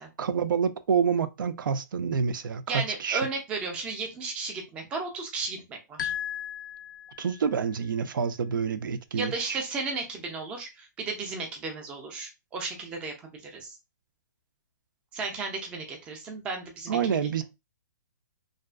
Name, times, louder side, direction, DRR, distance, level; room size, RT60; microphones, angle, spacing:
voice 1, 0.2-3.2 7.2-9.6 16.9-17.4, right 6 dB, 90° right, 0.4 m, -27 dB
voice 2, 2.7-6.1 9.1-13.8 15.1-17.0, right 4 dB, 10° right, 0.3 m, -34 dB
sound 1, 6.0-7.5, left 10 dB, 80° left, 0.4 m, -35 dB
2.5 x 2.3 x 2.2 m
hypercardioid pair, 165°, 11 cm